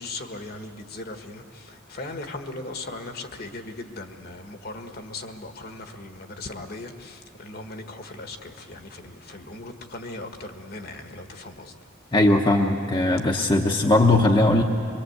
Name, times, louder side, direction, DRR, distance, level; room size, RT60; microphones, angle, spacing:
voice 1, 0.0-11.8, left 2 dB, 50° left, 5 dB, 1.5 m, -38 dB
voice 2, 12.1-14.6, left 2 dB, 25° left, 1 dB, 0.9 m, -19 dB
23.5 x 23.5 x 8.0 m, 2.5 s
head